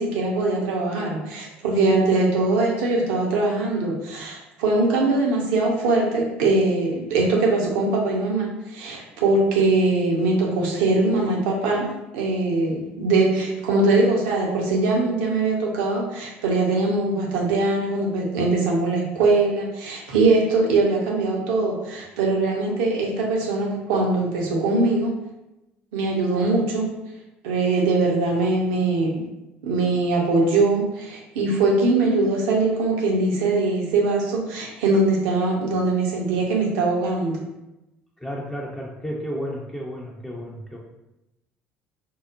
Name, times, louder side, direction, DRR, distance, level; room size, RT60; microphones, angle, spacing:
voice 1, 0.0-11.9 12.1-25.2 25.9-26.9 27.4-29.2 29.6-37.4, right 3 dB, 75° right, -1 dB, 0.7 m, -22 dB
voice 2, 38.2-40.8, equal, 10° left, -4 dB, 0.6 m, -32 dB
4.6 x 2.1 x 2.5 m, 0.94 s
hypercardioid pair, 60°, 6 cm